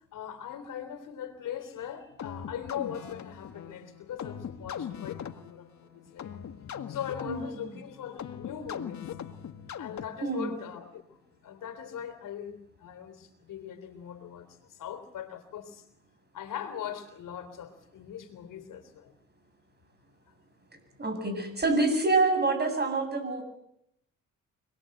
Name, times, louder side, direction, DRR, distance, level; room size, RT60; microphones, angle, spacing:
voice 1, 0.1-5.7 5.9-6.3 6.9-9.1 9.8-11.0 11.4-15.8 16.3-19.1, left 9 dB, 85° left, 9 dB, 3.6 m, -40 dB
sound 1, 2.2-10.4, left 8 dB, 60° left, 1.8 m, -41 dB
voice 2, 7.2-7.7 10.2-10.5 21.0-23.4, right 3 dB, 30° right, 7 dB, 8.0 m, -27 dB
26.0 x 21.0 x 7.9 m, 0.78 s
cardioid pair, 80°, 31 cm